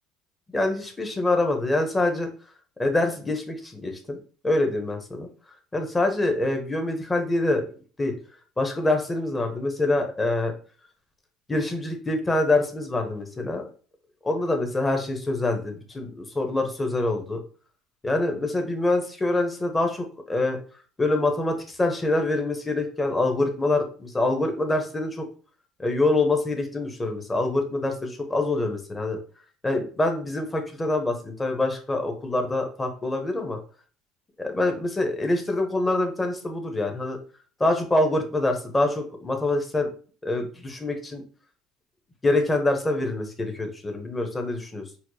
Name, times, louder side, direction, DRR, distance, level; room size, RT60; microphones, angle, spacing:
voice 1, 0.5-2.3 2.8-4.2 4.4-5.3 5.7-7.7 8.0-8.1 8.6-10.5 11.5-13.6 14.2-17.4 18.0-20.6 21.0-25.3 25.8-29.2 29.6-33.6 34.4-37.2 37.6-39.9 40.2-41.2 42.2-44.8, left 2 dB, 15° left, 4 dB, 0.8 m, -25 dB
4.3 x 2.2 x 2.7 m, 0.40 s
supercardioid pair, 85°, 0 cm